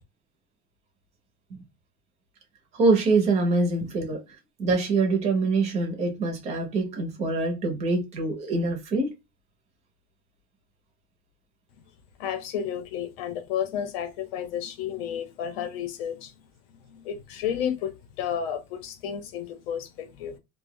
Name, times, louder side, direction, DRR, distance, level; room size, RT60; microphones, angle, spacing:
voice 1, 2.7-4.2 4.6-9.1, right 3 dB, 20° right, 0.7 m, -24 dB
voice 2, 12.2-16.3 16.7-20.4, left 9 dB, 55° left, 0.8 m, -32 dB
2.7 x 2.2 x 3.5 m
supercardioid pair, 175°, 35 cm